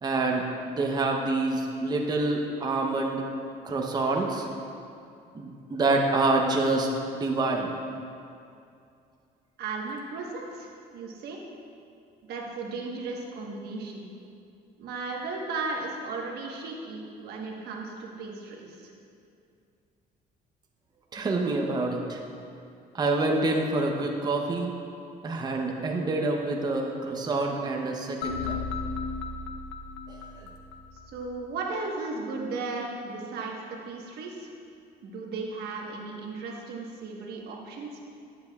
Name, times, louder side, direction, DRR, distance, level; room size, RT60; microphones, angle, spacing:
voice 1, 0.0-3.3 3.6-4.5 5.3-7.8 21.1-22.2 22.9-24.7 25.2-28.6 30.1-30.2, right 2 dB, 25° right, 1 dB, 0.7 m, -27 dB
voice 2, 9.6-11.4 12.2-14.1 14.8-18.9 30.9-34.5 35.0-38.0, right 3 dB, 70° right, -1 dB, 1.2 m, -36 dB
sound 1, 28.2-31.3, left 4 dB, 90° left, 0.5 m, -35 dB
10.5 x 7.5 x 2.3 m, 2.5 s
cardioid pair, 110°, 17 cm